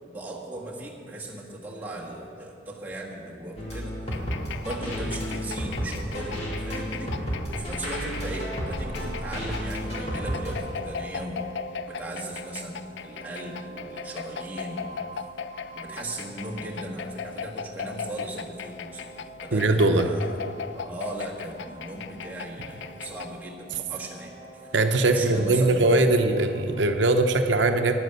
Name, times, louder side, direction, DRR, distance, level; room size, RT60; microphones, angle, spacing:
voice 1, 0.0-3.9 4.6-7.1 7.5-11.5 11.9-15.0 15.7-20.4 20.7-24.7 25.1-25.9, right 1 dB, 10° right, -4 dB, 1.5 m, -37 dB
sound 1, 3.6-10.6, equal, 35° left, 2.3 m, -32 dB
sound 2, 4.1-23.4, left 7 dB, 75° left, 0.4 m, -39 dB
sound 3, 8.1-26.9, right 3 dB, 30° right, 1.1 m, -46 dB
voice 2, 19.5-20.1 24.7-27.9, right 2 dB, 80° right, 7 dB, 0.8 m, -21 dB
10.0 x 9.4 x 6.8 m, 2.5 s
head